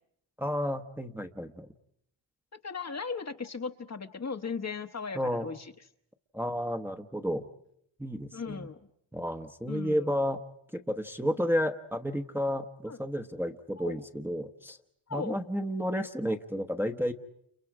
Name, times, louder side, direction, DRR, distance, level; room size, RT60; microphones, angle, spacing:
voice 1, 0.4-1.7 5.1-5.5 6.3-7.5 8.0-8.7 9.1-10.4 10.7-14.8 15.1-17.1, equal, 5° right, 5 dB, 1.0 m, -31 dB
voice 2, 2.6-5.7 8.3-8.9 9.7-10.1 12.9-13.0 13.8-13.9 15.1-15.4, left 5 dB, 30° left, 7 dB, 1.1 m, -37 dB
30.0 x 29.5 x 4.8 m, 0.73 s
cardioid pair, 80°, 50 cm